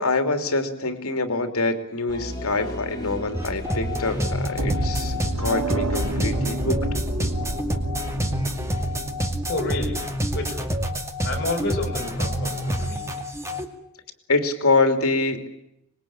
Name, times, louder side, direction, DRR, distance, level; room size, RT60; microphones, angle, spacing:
voice 1, 0.0-6.9 14.3-15.4, left 3 dB, 80° left, 7 dB, 3.1 m, -25 dB
sound 1, 2.1-4.9, left 1 dB, 20° left, 4.9 m, -36 dB
sound 2, 3.3-13.6, equal, 15° right, 2.2 m, -27 dB
sound 3, 4.6-10.6, right 1 dB, 80° right, 3.1 m, -30 dB
voice 2, 9.5-10.1 10.3-10.8 11.2-13.1, left 2 dB, 45° left, 0 dB, 7.1 m, -30 dB
25.5 x 21.5 x 8.9 m, 0.81 s
head